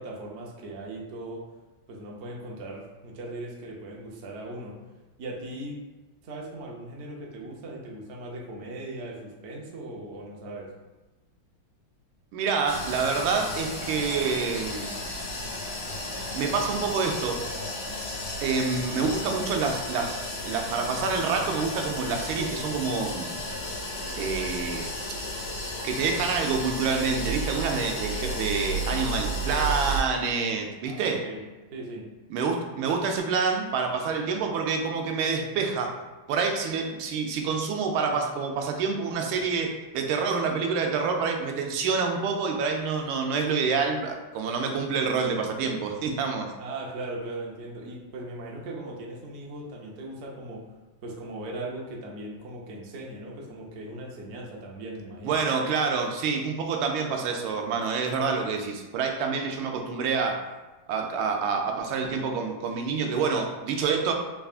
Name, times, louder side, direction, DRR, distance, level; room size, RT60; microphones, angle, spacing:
voice 1, 0.0-1.4 1.9-4.8 5.2-5.8 6.2-10.7 30.9-31.4 31.7-32.1 46.6-50.6 51.0-55.4, right 2 dB, 70° right, -2 dB, 0.6 m, -38 dB
voice 2, 12.3-14.9 16.3-17.4 18.4-23.3 24.2-24.9 25.8-31.2 32.3-36.0 36.3-46.5 55.2-60.5 60.9-64.1, right 5 dB, 90° right, 3 dB, 1.4 m, -27 dB
sound 1, 12.7-30.0, equal, 85° left, 1.9 m, -33 dB
4.0 x 3.5 x 2.4 m, 1.2 s
omnidirectional pair, 2.2 m